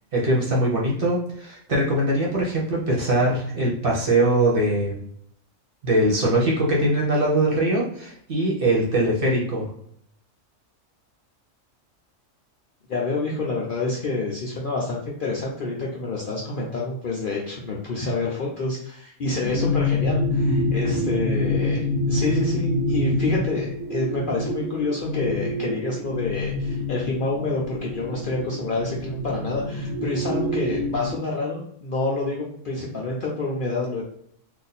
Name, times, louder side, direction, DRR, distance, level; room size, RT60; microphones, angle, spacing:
voice 1, 0.1-5.0 5.8-9.7, right 1 dB, 50° right, -3 dB, 0.9 m, -22 dB
voice 2, 12.9-34.0, left 3 dB, 55° left, -3 dB, 0.6 m, -28 dB
sound 1, 19.4-31.2, left 1 dB, 75° right, 0.9 m, -26 dB
2.7 x 2.4 x 4.0 m, 0.68 s
omnidirectional pair, 1.4 m